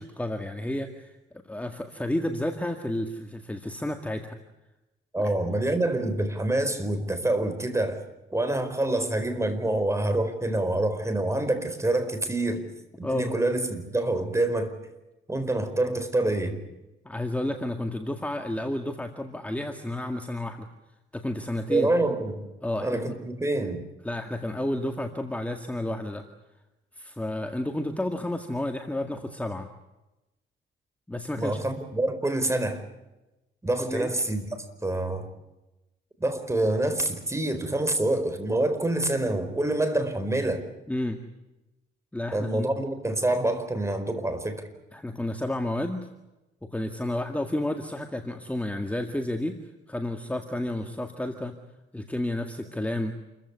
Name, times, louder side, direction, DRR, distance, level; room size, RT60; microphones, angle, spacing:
voice 1, 0.0-4.4 5.2-5.3 13.0-13.3 17.0-20.7 21.1-21.9 22.6-23.1 24.0-26.2 26.9-29.7 31.1-31.6 33.8-34.1 40.9-41.2 42.1-42.7 44.9-46.1 46.6-49.5 49.9-51.6 51.9-53.1, left 1 dB, 5° left, 5 dB, 2.0 m, -31 dB
voice 2, 5.1-8.0 8.3-12.6 13.0-14.7 15.3-16.6 21.7-22.4 22.8-23.8 31.4-32.8 33.6-34.5 34.8-35.3 36.2-40.6 42.3-44.7, right 2 dB, 15° right, 9 dB, 4.5 m, -26 dB
28.0 x 15.0 x 9.8 m, 1.0 s
cardioid pair, 90°, 20 cm